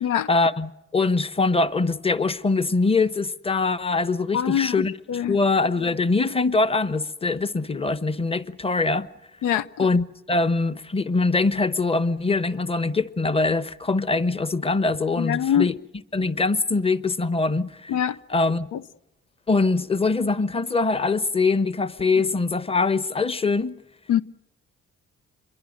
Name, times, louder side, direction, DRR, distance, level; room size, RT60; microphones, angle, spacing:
voice 1, 0.3-4.9 5.3-9.1 9.8-15.8 16.1-17.9 18.3-18.7 19.5-23.8, left 3 dB, 20° left, 1.1 m, -23 dB
voice 2, 4.3-5.4 9.4-9.9 15.2-15.7 17.9-18.2 18.7-18.8 24.1-24.2, left 9 dB, 90° left, 0.8 m, -24 dB
26.5 x 23.0 x 6.5 m
cardioid pair, 90°, 30 cm